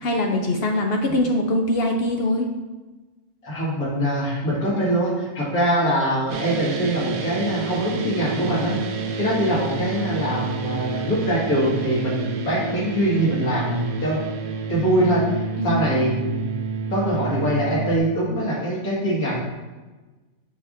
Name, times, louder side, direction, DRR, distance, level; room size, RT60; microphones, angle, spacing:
voice 1, 0.0-2.5 15.6-15.8, left 1 dB, 60° left, 2 dB, 0.7 m, -22 dB
voice 2, 3.4-8.8 9.2-14.2 14.7-16.5 16.9-19.3, right 1 dB, 90° left, -6 dB, 2.4 m, -23 dB
sound 1, 6.3-18.0, right 5 dB, 80° right, 1.1 m, -29 dB
6.9 x 5.7 x 2.6 m, 1.2 s
omnidirectional pair, 1.5 m